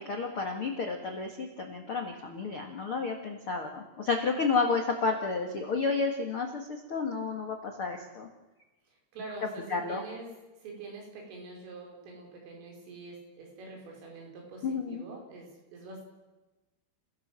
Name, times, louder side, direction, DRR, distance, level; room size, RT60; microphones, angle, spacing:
voice 1, 0.0-8.3 9.7-10.0 14.6-15.0, left 4 dB, 70° left, 3 dB, 1.2 m, -31 dB
voice 2, 9.1-10.3 10.6-16.1, right 3 dB, 80° right, 0 dB, 7.4 m, -45 dB
28.0 x 17.0 x 7.6 m, 1.1 s
omnidirectional pair, 5.7 m